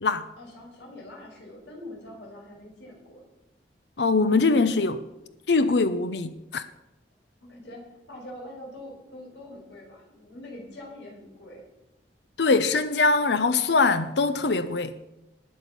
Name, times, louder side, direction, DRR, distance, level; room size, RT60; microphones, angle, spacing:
voice 1, 0.4-3.2 7.4-11.7, left 1 dB, 90° left, 5.6 m, -44 dB
voice 2, 4.0-5.1 5.5-6.6 12.4-15.0, left 3 dB, 75° left, 0.7 m, -22 dB
19.5 x 7.3 x 6.0 m
head